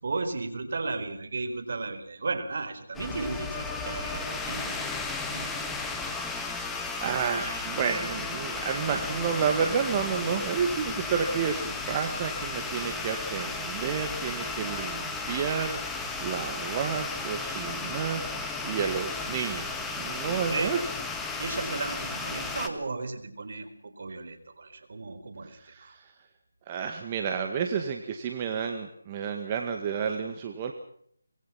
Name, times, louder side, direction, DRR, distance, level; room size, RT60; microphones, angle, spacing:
voice 1, 0.0-5.7 20.3-20.7 21.4-26.0, right 3 dB, 55° right, 10 dB, 4.4 m, -35 dB
sound 1, 2.9-22.7, left 3 dB, 5° left, 1.7 m, -34 dB
voice 2, 5.9-6.6 7.0-20.9 25.5-26.1 26.7-30.7, right 6 dB, 25° right, 5 dB, 2.0 m, -31 dB
25.0 x 21.5 x 5.9 m, 0.65 s
figure-of-eight pair, 165°, 0 cm